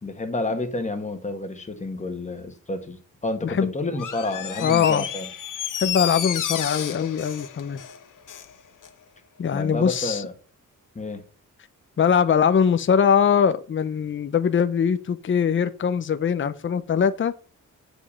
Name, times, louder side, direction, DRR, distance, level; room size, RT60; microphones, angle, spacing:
voice 1, 0.0-5.3 9.5-10.3 10.9-11.2, left 2 dB, 20° left, 1.5 m, -30 dB
Door, 3.9-8.5 8.8-8.9, left 9 dB, 75° left, 1.1 m, -31 dB
voice 2, 4.6-5.0 5.8-7.8 9.4-10.2 12.0-17.3, left 7 dB, 40° left, 0.7 m, -22 dB
9.2 x 5.2 x 7.0 m
wide cardioid pair, 145°, 32 cm